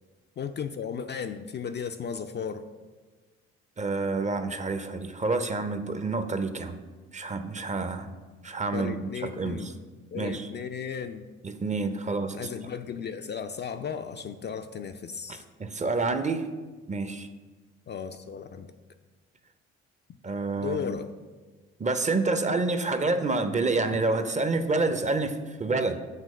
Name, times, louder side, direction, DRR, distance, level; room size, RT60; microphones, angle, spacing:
voice 1, 0.4-2.6 8.7-9.7 10.1-11.3 12.3-15.4 17.9-18.7 20.6-21.1, left 7 dB, 35° left, 7 dB, 0.4 m, -35 dB
voice 2, 3.8-6.8 7.1-8.1 8.4-9.7 10.2-10.5 11.4-12.4 15.3-16.5 16.9-17.3 20.2-20.9 21.8-26.0, right 3 dB, 20° right, 9 dB, 0.5 m, -28 dB
7.5 x 2.9 x 5.4 m, 1.3 s
hypercardioid pair, 55°, 33 cm